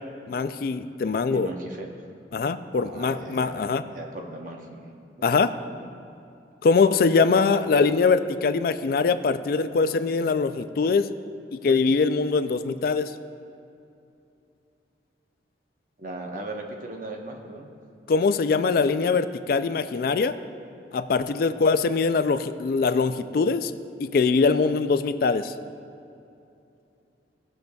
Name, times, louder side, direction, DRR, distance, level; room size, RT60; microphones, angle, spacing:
voice 1, 0.3-1.5 2.3-3.8 5.2-5.5 6.6-11.1 11.5-13.1 18.1-20.3 20.9-23.7 24.0-25.5, left 4 dB, 55° left, 11 dB, 0.3 m, -22 dB
voice 2, 1.3-2.0 2.7-3.6 3.9-4.9 16.0-17.7, right 2 dB, 50° right, 1 dB, 1.0 m, -37 dB
18.0 x 6.5 x 2.3 m, 2.7 s
head